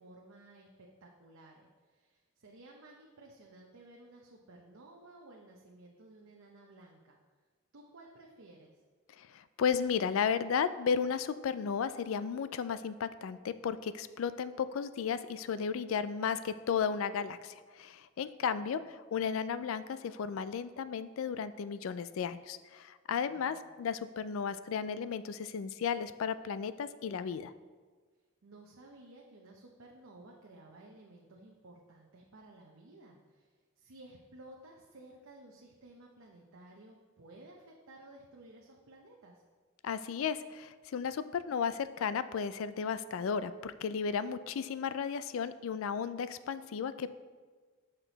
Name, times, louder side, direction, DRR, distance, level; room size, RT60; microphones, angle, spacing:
voice 1, 0.0-7.2 7.7-8.7 23.1-23.7 28.4-33.5 33.8-39.4, right 2 dB, 80° right, -1 dB, 0.8 m, -55 dB
voice 2, 9.2-27.5 39.8-47.1, left 6 dB, 75° left, 14 dB, 0.3 m, -34 dB
6.6 x 6.0 x 3.9 m, 1.4 s
head